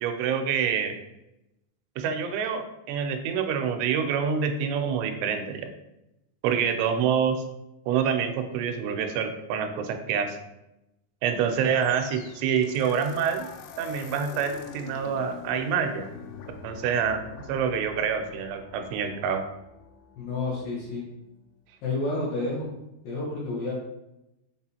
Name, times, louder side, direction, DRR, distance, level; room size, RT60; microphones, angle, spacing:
voice 1, 0.0-0.9 2.0-5.7 6.4-7.4 7.9-10.4 11.2-13.5 13.8-16.1 16.6-17.2 17.5-19.4, right 7 dB, 85° right, 6 dB, 2.7 m, -26 dB
sound 1, 11.8-21.0, left 6 dB, 90° left, 2.7 m, -45 dB
voice 2, 20.2-21.1 21.8-22.7 23.0-23.7, left 2 dB, 70° left, -5 dB, 2.2 m, -30 dB
6.6 x 2.4 x 2.8 m, 0.90 s
omnidirectional pair, 4.8 m